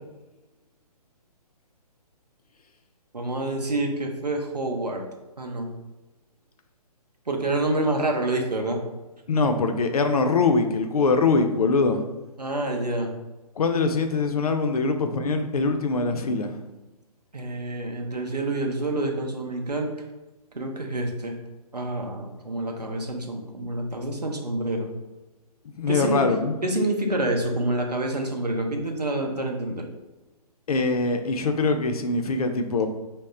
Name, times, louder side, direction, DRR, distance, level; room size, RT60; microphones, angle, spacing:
voice 1, 3.1-5.0 5.4-5.7 7.3-8.8 12.4-13.1 17.3-19.9 20.5-21.3 21.7-24.9 25.9-26.2 26.6-29.9, right 2 dB, 90° right, 2 dB, 0.6 m, -27 dB
voice 2, 9.3-12.0 13.6-16.5 25.8-26.5 30.7-32.9, left 3 dB, 65° left, 6 dB, 0.4 m, -23 dB
2.0 x 2.0 x 3.6 m, 1.1 s
figure-of-eight pair, 130°, 20 cm